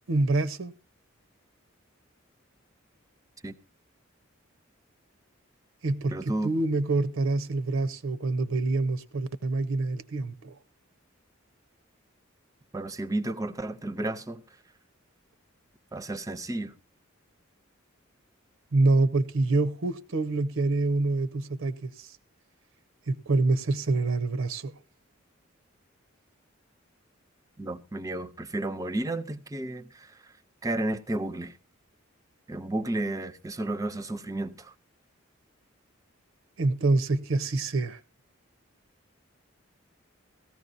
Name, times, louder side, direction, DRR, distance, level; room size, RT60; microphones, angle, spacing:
voice 1, 0.1-0.7 5.8-10.6 18.7-22.1 23.1-24.7 36.6-38.0, right 2 dB, 70° right, 0.6 m, -26 dB
voice 2, 6.1-6.5 12.7-14.4 15.9-16.7 27.6-30.1 30.6-31.5 32.5-34.7, right 2 dB, 15° right, 0.6 m, -32 dB
17.0 x 14.0 x 2.6 m
head